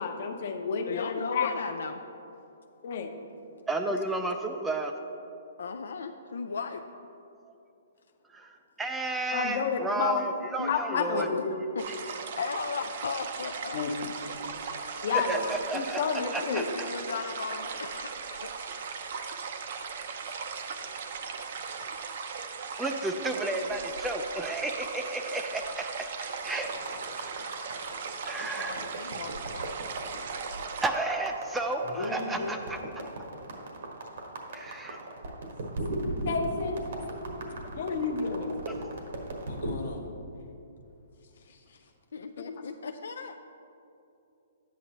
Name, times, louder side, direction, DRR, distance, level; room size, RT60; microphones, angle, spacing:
voice 1, 0.0-1.5 2.8-3.1 9.3-10.2 10.7-11.6 13.7-13.9 15.0-15.4 15.7-16.6 36.3-36.8 37.8-38.5 42.4-42.5, left 5 dB, 50° left, 5 dB, 0.8 m, -30 dB
voice 2, 0.9-2.0 5.6-6.9 10.6-11.5 11.7-11.9 12.4-13.8 14.1-14.3 16.2-18.5 28.3-29.7 42.1-43.4, left 5 dB, 85° left, 6 dB, 0.4 m, -36 dB
voice 3, 3.7-4.9 8.3-8.5 8.8-11.3 15.1-16.0 16.3-16.9 22.8-26.7 27.2-27.3 28.3-28.9 30.8-32.8 34.5-35.0, right 2 dB, 5° right, 5 dB, 0.3 m, -32 dB
sound 1, 11.8-30.9, right 5 dB, 55° right, 0.6 m, -38 dB
sound 2, 26.4-39.8, right 2 dB, 70° right, 1.3 m, -37 dB
voice 4, 31.8-32.6 39.5-40.1 41.2-41.9, left 3 dB, 70° left, 2 dB, 1.1 m, -38 dB
10.0 x 8.3 x 2.9 m, 2.7 s
hypercardioid pair, 160°, 0 cm